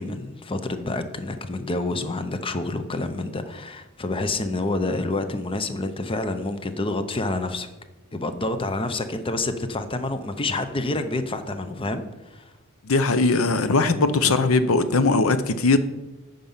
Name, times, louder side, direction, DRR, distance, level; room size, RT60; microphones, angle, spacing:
voice 1, 0.0-7.7 8.1-12.0 12.3-12.5, left 2 dB, 25° left, 10 dB, 0.7 m, -28 dB
voice 2, 12.9-15.8, left 3 dB, 85° left, 12 dB, 0.7 m, -20 dB
9.2 x 5.4 x 7.3 m, 1.1 s
head